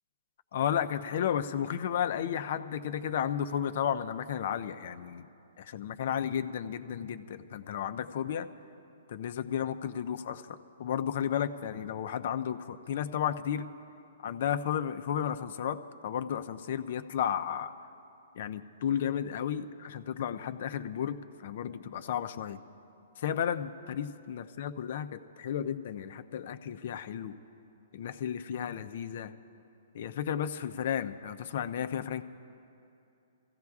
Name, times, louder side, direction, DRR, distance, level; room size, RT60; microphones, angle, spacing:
voice 1, 0.5-5.3 5.6-8.5 9.1-13.7 14.2-17.7 18.4-22.6 23.2-27.4 27.9-29.3 29.9-32.2, left 9 dB, 55° left, 11 dB, 0.5 m, -33 dB
26.5 x 15.5 x 2.4 m, 2.7 s
hypercardioid pair, 150°, 0 cm